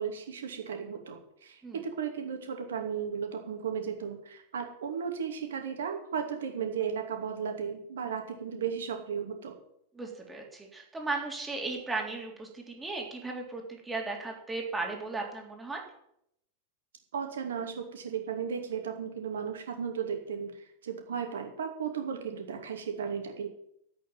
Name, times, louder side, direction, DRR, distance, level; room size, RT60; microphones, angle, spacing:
voice 1, 0.0-9.5 17.1-23.5, right 7 dB, 65° right, 4 dB, 2.5 m, -35 dB
voice 2, 10.0-15.8, right 3 dB, 10° right, 1 dB, 3.5 m, -36 dB
10.5 x 8.4 x 9.0 m, 0.74 s
figure-of-eight pair, 90°, 0 cm